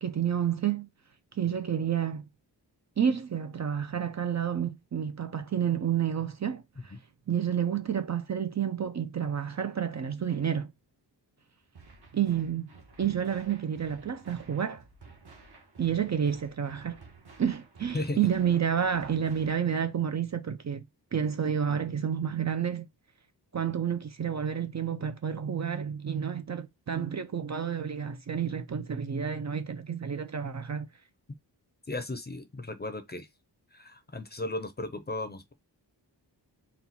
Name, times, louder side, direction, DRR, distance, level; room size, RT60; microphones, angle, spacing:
voice 1, 0.0-0.9 1.4-2.2 3.0-6.9 7.3-10.7 12.1-12.7 13.0-14.8 15.8-17.0 17.4-20.8 21.1-22.9 23.5-30.9, right 8 dB, 40° right, 0.5 m, -30 dB
sound 1, 11.7-19.7, right 3 dB, 65° right, 1.3 m, -53 dB
voice 2, 31.9-33.3 33.7-35.5, left 2 dB, 25° left, 0.6 m, -35 dB
4.2 x 2.3 x 4.1 m
wide cardioid pair, 140°, 42 cm